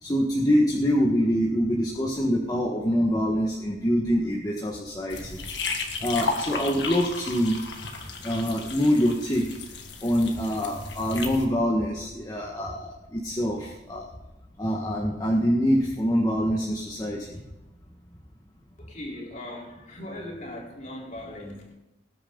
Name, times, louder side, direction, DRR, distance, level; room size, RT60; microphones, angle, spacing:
voice 1, 0.0-5.4 6.0-7.6 8.2-9.4 10.0-14.1 14.6-17.2, equal, 20° left, -3 dB, 1.6 m, -25 dB
sound 1, 5.1-11.4, left 4 dB, 65° left, 1.8 m, -34 dB
voice 2, 18.8-21.8, left 1 dB, 40° left, -2 dB, 3.7 m, -39 dB
19.5 x 9.6 x 3.9 m, 1.0 s
head